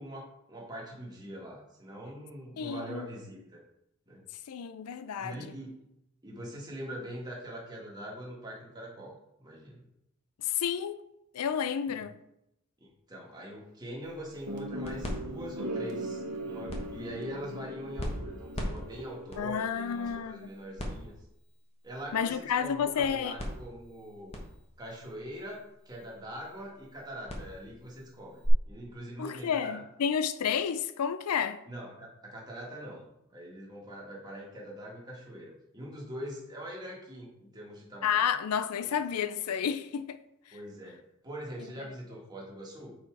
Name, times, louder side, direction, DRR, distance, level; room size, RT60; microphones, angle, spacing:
voice 1, 0.0-3.6 4.1-4.2 5.2-5.9 6.2-9.2 9.4-9.8 11.9-12.0 13.1-21.1 21.8-24.3 24.8-29.8 31.7-33.0 33.3-38.3 38.8-38.9 40.5-43.0, equal, 20° right, 1.7 m, -43 dB
voice 2, 2.6-3.1 4.5-5.5 10.4-11.0 11.3-12.1 19.4-20.5 22.1-23.4 29.2-31.6 38.0-40.2, left 7 dB, 80° left, 0.4 m, -30 dB
sound 1, 14.0-28.5, equal, 25° left, 1.3 m, -43 dB
sound 2, 14.5-19.6, right 1 dB, 90° right, 1.2 m, -39 dB
6.7 x 4.8 x 4.7 m
head